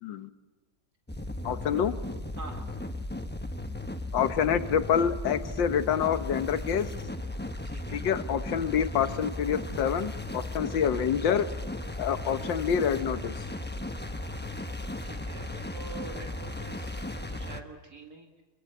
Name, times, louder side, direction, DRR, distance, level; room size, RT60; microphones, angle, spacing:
sound 1, 1.1-17.6, left 1 dB, 10° left, 0.7 m, -36 dB
voice 1, 1.4-1.9 4.1-6.9 7.9-11.5 12.0-13.3, left 8 dB, 85° left, 10 dB, 1.8 m, -27 dB
voice 2, 2.4-2.7 7.6-8.0 14.4-14.5 15.0-18.4, right 3 dB, 60° right, 2 dB, 2.5 m, -46 dB
25.0 x 23.0 x 7.8 m, 1.2 s
omnidirectional pair, 2.0 m